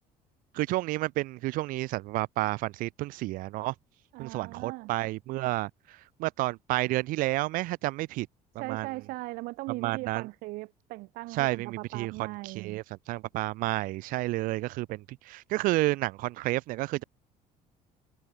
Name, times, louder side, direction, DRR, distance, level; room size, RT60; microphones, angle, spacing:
voice 1, 0.5-3.7 4.2-8.3 8.7-8.9 9.8-10.3 11.3-17.0, right 19 dB, 70° right, 1.9 m, -30 dB
voice 2, 4.1-4.9 8.6-12.8, right 22 dB, 90° right, 2.2 m, -39 dB
cardioid pair, 170°, 15 cm